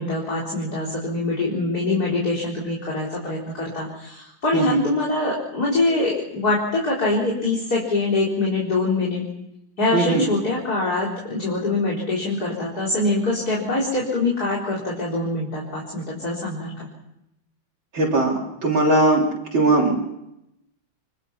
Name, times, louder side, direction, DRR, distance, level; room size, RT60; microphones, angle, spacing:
voice 1, 0.0-9.2 9.8-16.9, left 2 dB, 40° left, -4 dB, 4.5 m, -24 dB
voice 2, 9.9-10.3 17.9-18.4 18.6-19.3 19.5-20.0, right 2 dB, 60° right, -3 dB, 4.3 m, -19 dB
26.0 x 22.5 x 5.8 m, 0.85 s
omnidirectional pair, 2.4 m